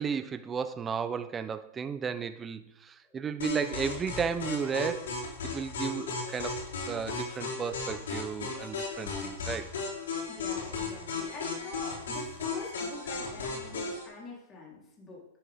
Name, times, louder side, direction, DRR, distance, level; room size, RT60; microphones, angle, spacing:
voice 1, 0.0-6.6 6.9-9.7, right 6 dB, 20° right, 0.7 m, -34 dB
sound 1, 3.4-14.0, left 4 dB, 85° left, 3.8 m, -36 dB
voice 2, 10.3-15.3, left 3 dB, 20° left, 3.7 m, -44 dB
11.0 x 10.0 x 3.6 m
hypercardioid pair, 135°, 0 cm